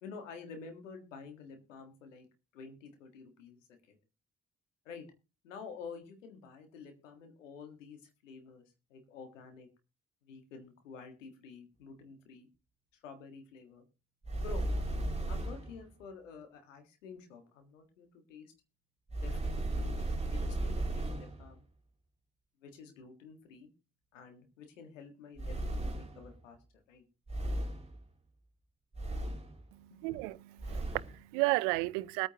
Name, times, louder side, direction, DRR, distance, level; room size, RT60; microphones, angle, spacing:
voice 1, 0.0-2.3 2.5-4.0 4.8-5.1 5.4-8.6 8.9-9.7 10.2-12.5 13.0-13.8 14.4-14.7 15.3-18.5 19.2-21.6 22.6-23.7 24.1-26.6 26.9-27.0 29.9-30.0, left 5 dB, 90° left, 1.7 m, -49 dB
sound 1, 14.2-15.8 19.1-21.4 25.4-26.3 27.3-27.9 28.9-29.6 30.6-31.1, right 1 dB, 15° right, 2.6 m, -35 dB
voice 2, 29.7-32.3, right 21 dB, 80° right, 0.6 m, -33 dB
21.5 x 8.8 x 2.9 m
hypercardioid pair, 40°, 37 cm